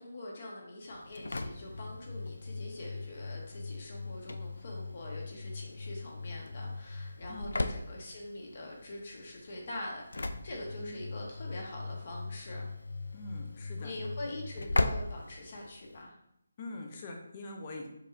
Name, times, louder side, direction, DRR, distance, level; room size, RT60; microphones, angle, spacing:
voice 1, 0.0-12.7 13.8-16.1, left 1 dB, 45° left, -1 dB, 1.2 m, -44 dB
Engine / Slam, 0.9-16.1, left 2 dB, 80° left, 0.3 m, -38 dB
voice 2, 13.1-14.3 16.6-17.9, left 2 dB, 30° left, 1 dB, 0.7 m, -44 dB
4.7 x 3.9 x 2.5 m, 0.81 s
figure-of-eight pair, 165°, 0 cm